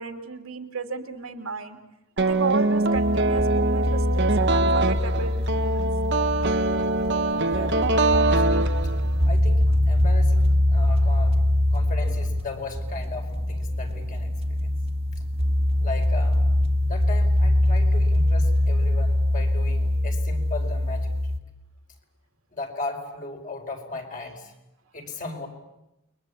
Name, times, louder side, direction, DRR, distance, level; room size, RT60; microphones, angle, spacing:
voice 1, 0.0-1.8 2.2-5.9, right 4 dB, 85° right, 5 dB, 2.8 m, -33 dB
sound 1, 2.2-9.3, right 2 dB, 55° right, 1.4 m, -23 dB
sound 2, 2.9-21.4, left 1 dB, 30° right, 1.7 m, -23 dB
voice 2, 7.4-8.6 9.2-14.7 15.8-16.5 16.9-21.1 22.5-24.5 24.9-25.5, left 3 dB, 40° left, 3 dB, 4.8 m, -37 dB
29.5 x 23.0 x 8.5 m, 0.92 s
head